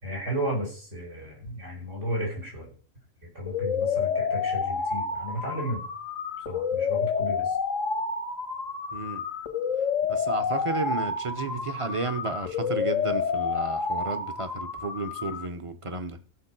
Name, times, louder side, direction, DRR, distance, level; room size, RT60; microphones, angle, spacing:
voice 1, 0.0-2.7 3.3-5.8 6.5-7.6, equal, 75° right, 6.2 m, -33 dB
sound 1, 3.5-15.5, left 5 dB, 90° left, 1.7 m, -29 dB
voice 2, 8.9-9.2 10.1-16.2, right 3 dB, 25° right, 1.0 m, -32 dB
14.5 x 6.4 x 6.0 m
omnidirectional pair, 1.3 m